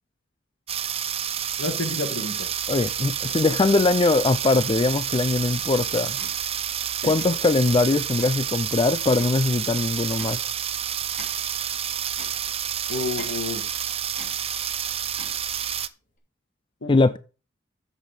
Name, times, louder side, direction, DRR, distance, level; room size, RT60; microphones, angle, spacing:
sound 1, 0.7-15.9, right 9 dB, 30° right, 0.5 m, -29 dB
voice 1, 1.6-2.5 7.0-7.1 12.9-13.8 16.8-16.9, left 3 dB, 75° left, 1.9 m, -30 dB
voice 2, 2.7-6.2 7.0-10.4 16.9-17.2, left 3 dB, 25° left, 0.4 m, -21 dB
sound 2, 6.2-6.4 7.2-7.4 8.2-8.4 9.2-9.4 10.2-10.4 11.2-11.4 12.2-12.4 13.2-13.4 14.2-14.4 15.2-15.4, left 2 dB, 45° left, 2.8 m, -43 dB
8.3 x 7.4 x 5.2 m
head